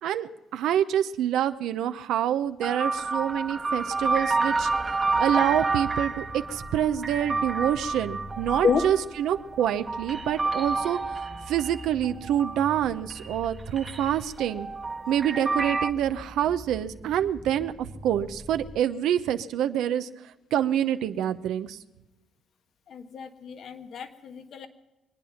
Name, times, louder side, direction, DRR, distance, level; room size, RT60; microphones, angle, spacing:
voice 1, 0.0-14.7 15.1-20.1 20.5-21.8, right 10 dB, 85° right, 9 dB, 0.8 m, -27 dB
sound 1, 2.5-18.8, equal, 20° left, 0.9 m, -45 dB
sound 2, 2.6-12.8 13.1-15.9, right 3 dB, 30° right, 1.2 m, -30 dB
voice 2, 22.9-24.7, left 6 dB, 65° left, 8 dB, 1.5 m, -29 dB
25.0 x 9.4 x 5.8 m, 1.1 s
cardioid pair, 90°, 0 cm